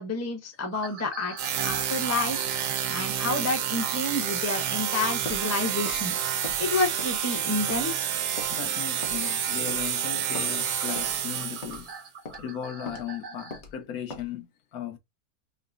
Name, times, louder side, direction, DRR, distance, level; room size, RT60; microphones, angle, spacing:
voice 1, 0.0-1.3 1.6-2.5 2.9-6.2 6.6-8.1, left 2 dB, 15° left, 0.6 m, -29 dB
sound 1, 0.7-5.5 5.8-7.9 8.4-8.8 9.3-9.4 10.0-10.1 10.3-13.6, right 4 dB, 60° right, 0.5 m, -44 dB
sound 2, 1.4-11.9, right 9 dB, 80° right, 1.2 m, -29 dB
Walk footsteps, 5.3-5.4 5.9-6.0 6.4-6.6 7.0-7.3 7.7-7.8 8.4-8.5 9.0-9.2 9.7-9.9 10.3-10.5 11.0-11.1 11.6-11.8 12.2-12.4 12.9-13.0 13.5-13.7 14.1-14.3, left 3 dB, 50° left, 1.2 m, -39 dB
voice 2, 8.5-11.9 12.4-14.5 14.7-15.0, left 9 dB, 70° left, 1.2 m, -36 dB
5.6 x 2.0 x 2.5 m
omnidirectional pair, 1.7 m